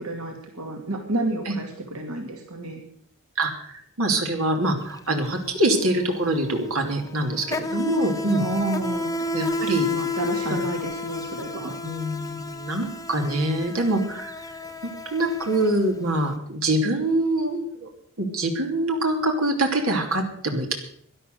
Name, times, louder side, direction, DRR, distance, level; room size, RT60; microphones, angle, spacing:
voice 1, 0.0-2.8 8.3-9.2 9.8-11.8, right 2 dB, 90° right, 3 dB, 2.5 m, -30 dB
voice 2, 3.4-8.4 9.3-9.9 10.4-10.5 11.8-14.4 14.8-17.9 18.2-20.7, right 1 dB, 75° right, 3 dB, 2.8 m, -24 dB
Insect, 4.8-5.0 5.3-16.3, left 2 dB, 15° left, 0.9 m, -32 dB
12.5 x 11.5 x 7.8 m, 0.65 s
head